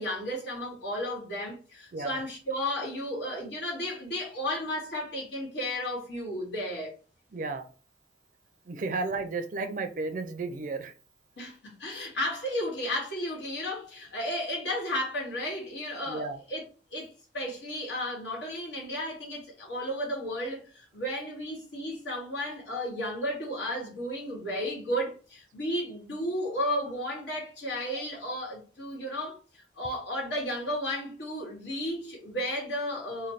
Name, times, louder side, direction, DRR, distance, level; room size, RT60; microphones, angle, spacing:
voice 1, 0.0-6.9 11.4-16.6 16.9-33.3, equal, 90° left, 1.6 m, -33 dB
voice 2, 7.3-7.6 8.7-10.9 16.1-16.4, right 3 dB, 50° right, 0.4 m, -33 dB
3.1 x 2.2 x 4.0 m
head